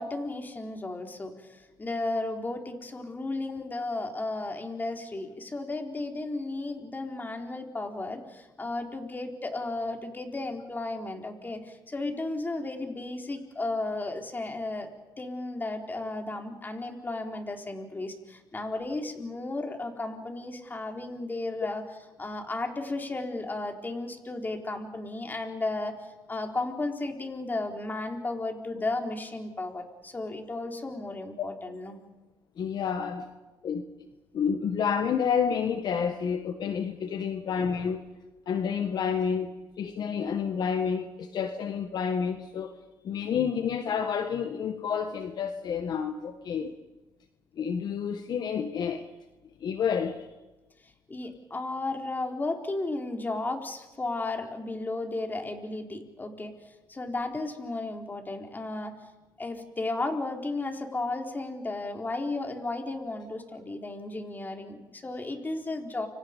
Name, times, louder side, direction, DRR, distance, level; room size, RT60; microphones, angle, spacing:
voice 1, 0.0-14.9 15.2-21.8 22.2-25.9 26.3-32.0 51.1-58.9 59.4-66.1, left 2 dB, 25° left, 3 dB, 4.2 m, -34 dB
voice 2, 32.6-33.3 33.6-33.8 34.3-38.0 38.5-39.5 39.8-42.8 43.0-46.7 47.6-49.1 49.6-50.2, left 7 dB, 60° left, 7 dB, 1.7 m, -29 dB
30.0 x 25.0 x 5.4 m, 1.1 s
cardioid pair, 90°, 8 cm